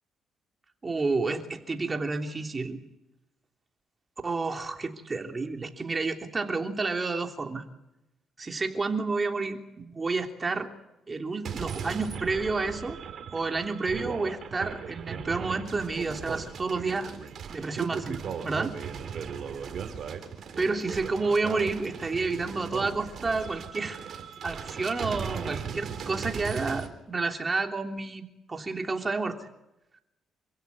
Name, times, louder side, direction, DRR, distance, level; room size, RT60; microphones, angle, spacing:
voice 1, 0.8-2.8 4.2-7.6 8.4-10.7 11.1-13.0 13.3-17.1 17.5-18.7 20.6-24.0 24.4-29.5, right 3 dB, 30° right, 4 dB, 3.2 m, -30 dB
sound 1, 11.4-26.9, right 7 dB, 60° right, 3.8 m, -37 dB
27.5 x 16.5 x 9.6 m, 0.93 s
cardioid pair, 90°, 0 cm